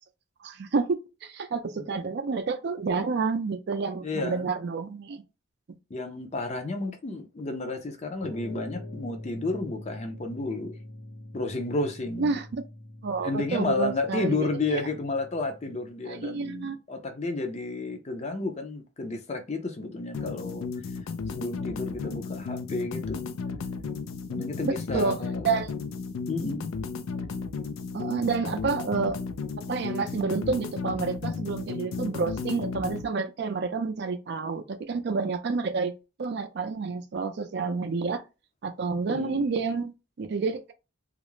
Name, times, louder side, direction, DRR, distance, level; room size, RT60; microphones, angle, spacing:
voice 1, 0.4-5.2 5.7-5.8 12.2-12.6 13.0-14.8 16.0-16.7 24.6-25.2 25.4-25.7 27.9-29.2 29.7-35.9 36.2-38.2 38.6-39.9 40.2-40.7, right 4 dB, 55° right, 0.4 m, -29 dB
voice 2, 4.0-4.5 5.9-10.8 11.3-12.4 13.2-21.0 21.3-23.3 24.3-25.5 26.3-26.7 39.1-39.5, left 3 dB, 35° left, 0.5 m, -32 dB
sound 1, 8.2-15.9, left 1 dB, 65° left, 1.1 m, -44 dB
sound 2, 20.1-33.1, left 4 dB, 90° left, 0.4 m, -34 dB
2.4 x 2.0 x 3.0 m
head